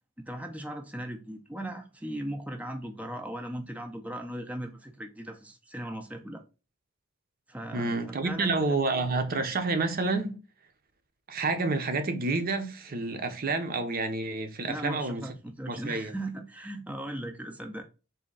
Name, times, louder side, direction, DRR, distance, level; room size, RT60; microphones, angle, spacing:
voice 1, 0.3-6.4 7.5-8.0 8.2-8.5 14.7-17.8, right 1 dB, 10° right, 0.5 m, -38 dB
voice 2, 7.7-10.4 11.3-15.2 15.7-16.1, right 3 dB, 50° right, 0.7 m, -29 dB
4.1 x 2.8 x 3.8 m
head